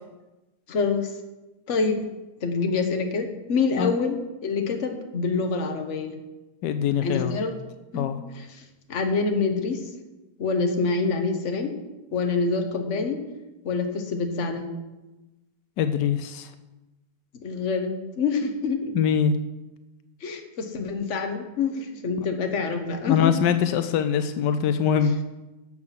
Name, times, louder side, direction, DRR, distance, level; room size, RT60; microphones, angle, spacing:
voice 1, 0.7-1.1 1.7-2.0 2.4-6.1 7.0-7.5 7.9-8.1 8.3-8.6 8.9-9.8 10.4-11.7 12.1-13.2 13.6-14.7 17.4-18.9 20.2-23.3, left 4 dB, 45° left, 5 dB, 1.5 m, -26 dB
voice 2, 6.6-7.4 7.9-8.2 15.8-16.5 18.9-19.3 22.2-22.3 23.0-25.2, left 8 dB, 85° left, 9 dB, 1.3 m, -23 dB
12.0 x 7.6 x 5.9 m, 1.1 s
omnidirectional pair, 1.9 m